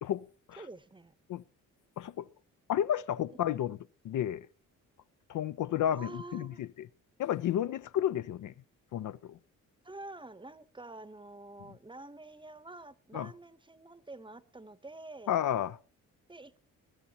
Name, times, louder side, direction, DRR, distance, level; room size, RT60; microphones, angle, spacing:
voice 1, 0.0-0.6 1.3-1.4 2.0-2.2 2.7-3.8 4.0-4.5 5.3-6.9 7.2-8.5 8.9-9.4 13.1-13.3 15.3-15.8, left 10 dB, 65° left, 0.5 m, -32 dB
voice 2, 0.6-1.1 5.9-6.6 9.8-15.4 16.3-16.6, right 2 dB, 15° right, 0.8 m, -47 dB
21.0 x 12.5 x 2.8 m
cardioid pair, 70°, 33 cm